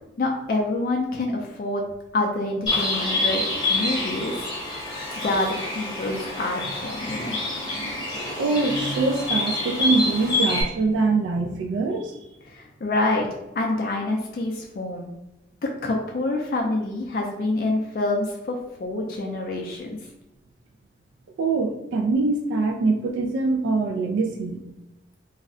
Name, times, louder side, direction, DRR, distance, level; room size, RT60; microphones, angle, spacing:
voice 1, 0.2-3.4 3.7-4.5 5.2-7.4 12.5-13.3 13.5-15.1 15.6-20.0, left 2 dB, 50° left, 1 dB, 0.3 m, -27 dB
Bird, 2.7-10.6, left 2 dB, 25° left, 0.7 m, -27 dB
voice 2, 8.3-12.2 21.4-24.6, right 3 dB, 85° right, 1 dB, 0.3 m, -24 dB
2.4 x 2.1 x 3.6 m, 0.95 s
head